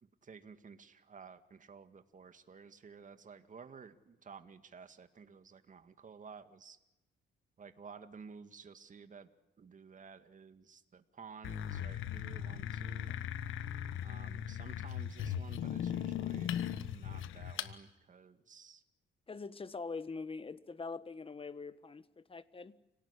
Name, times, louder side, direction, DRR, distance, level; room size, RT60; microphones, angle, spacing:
voice 1, 0.0-6.8 7.6-9.3 9.6-13.2 14.0-16.6 16.9-18.8, right 5 dB, 40° right, 9 dB, 2.1 m, -53 dB
sound 1, 11.4-17.7, left 10 dB, 85° left, 1.4 m, -38 dB
voice 2, 19.3-22.7, left 4 dB, 25° left, 14 dB, 1.5 m, -43 dB
29.5 x 18.5 x 10.0 m, 0.91 s
cardioid pair, 90°, 20 cm